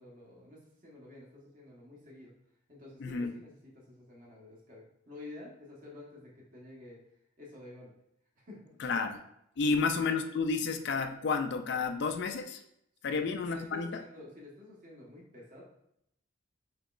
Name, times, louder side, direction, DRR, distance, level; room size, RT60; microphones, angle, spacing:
voice 1, 0.0-2.4 2.7-7.0 7.4-7.9 8.4-8.7 9.6-9.8 13.1-15.6, left 2 dB, 40° right, -4 dB, 1.2 m, -50 dB
voice 2, 3.0-3.3 8.8-9.2 9.6-12.6 13.0-14.0, left 4 dB, 55° left, 7 dB, 0.4 m, -31 dB
6.5 x 3.0 x 2.4 m, 0.77 s
head